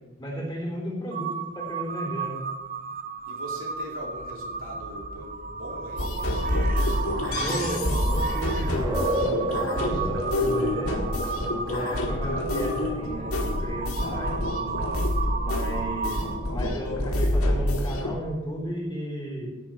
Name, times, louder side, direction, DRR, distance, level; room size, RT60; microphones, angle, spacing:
voice 1, 0.2-2.4 7.3-11.0 11.7-15.0 15.4-16.2 16.5-19.5, equal, 20° left, -3 dB, 3.6 m, -34 dB
Crow, 1.1-16.6, right 5 dB, 40° right, 0.6 m, -34 dB
voice 2, 3.2-6.4 12.2-12.4, right 1 dB, 70° right, 0 dB, 2.4 m, -41 dB
sound 1, 6.0-18.1, left 1 dB, 80° left, 1.6 m, -27 dB
sound 2, 6.2-17.6, right 1 dB, 20° right, 2.6 m, -36 dB
16.0 x 7.2 x 4.5 m, 1.1 s
head